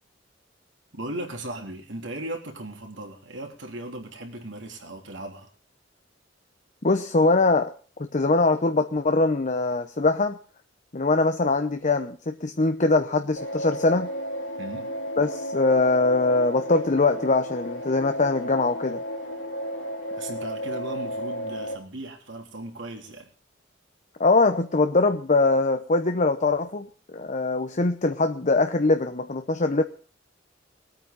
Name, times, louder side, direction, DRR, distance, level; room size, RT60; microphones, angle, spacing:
voice 1, 0.9-5.5 14.6-14.9 20.2-23.3, right 1 dB, 70° right, 2 dB, 3.6 m, -37 dB
voice 2, 6.8-7.7 8.1-10.4 10.9-14.1 15.2-19.0 24.2-26.9 27.1-29.8, left 3 dB, 40° left, 7 dB, 0.9 m, -22 dB
sound 1, 13.4-21.7, equal, 90° left, 2.9 m, -33 dB
20.5 x 9.0 x 5.3 m, 0.41 s
head